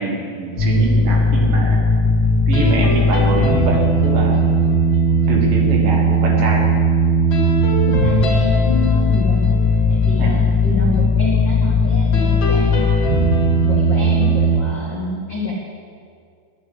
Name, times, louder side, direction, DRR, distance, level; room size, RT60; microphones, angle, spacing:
voice 1, 0.0-1.8 2.5-4.4 5.3-6.7 10.2-10.5, right 3 dB, 60° right, -1 dB, 2.8 m, -24 dB
sound 1, 0.6-14.6, equal, 50° left, 1.3 m, -16 dB
voice 2, 7.9-9.5 9.9-13.0 13.6-15.5, left 2 dB, 75° left, -4 dB, 1.0 m, -27 dB
9.9 x 8.6 x 9.8 m, 2.1 s
omnidirectional pair, 5.0 m